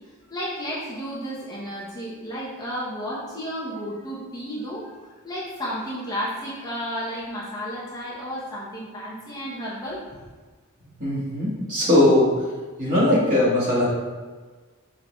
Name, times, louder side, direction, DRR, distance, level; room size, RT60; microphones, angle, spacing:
voice 1, 0.3-4.9 5.2-10.0, equal, 15° left, -7 dB, 1.1 m, -32 dB
voice 2, 11.0-12.5 12.8-13.8, left 1 dB, 35° right, -7 dB, 1.8 m, -20 dB
5.3 x 3.9 x 4.5 m, 1.4 s
head